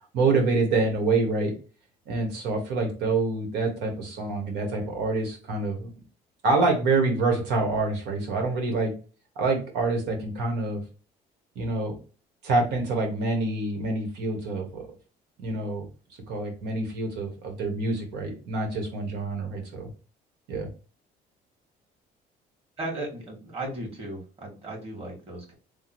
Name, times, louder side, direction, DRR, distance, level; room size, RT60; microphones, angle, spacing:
voice 1, 0.1-1.5 2.1-5.9 6.4-8.9 9.3-10.8 11.5-12.0 12.4-14.8 15.4-15.9 16.3-19.9 20.5-20.7, right 3 dB, 85° right, 2 dB, 1.7 m, -26 dB
voice 2, 22.8-25.5, right 1 dB, 35° right, -1 dB, 2.1 m, -36 dB
3.6 x 2.4 x 4.5 m, 0.34 s
cardioid pair, 110°, 17 cm